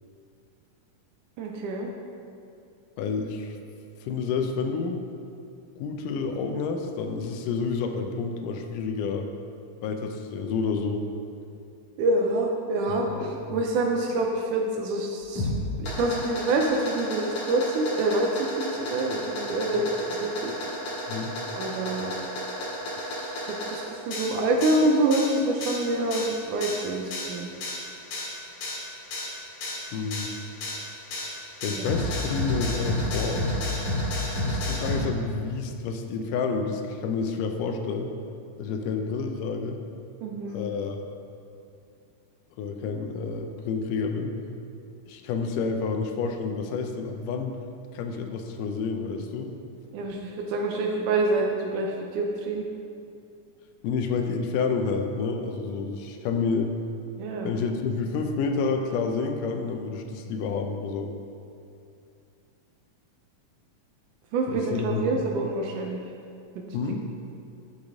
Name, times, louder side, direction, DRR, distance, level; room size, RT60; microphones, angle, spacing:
voice 1, 1.4-1.9 12.0-15.5 15.8-20.5 21.6-22.1 23.0-27.5 40.2-40.6 49.9-52.7 57.2-57.5 64.3-66.0 66.6-67.0, right 2 dB, 75° right, 1 dB, 2.1 m, -26 dB
voice 2, 3.0-3.6 4.0-5.0 5.8-9.3 9.8-11.1 12.9-13.6 19.7-19.8 21.1-21.4 29.9-30.3 31.6-33.5 34.3-38.1 38.6-39.8 40.5-41.0 42.6-44.4 45.1-47.6 47.9-49.5 53.8-56.7 57.4-61.1 64.5-65.3 66.7-67.1, left 5 dB, 80° left, 5 dB, 2.2 m, -29 dB
sound 1, 15.2-35.0, left 1 dB, 60° left, 2.8 m, -31 dB
10.5 x 6.5 x 3.6 m, 2.5 s
omnidirectional pair, 3.8 m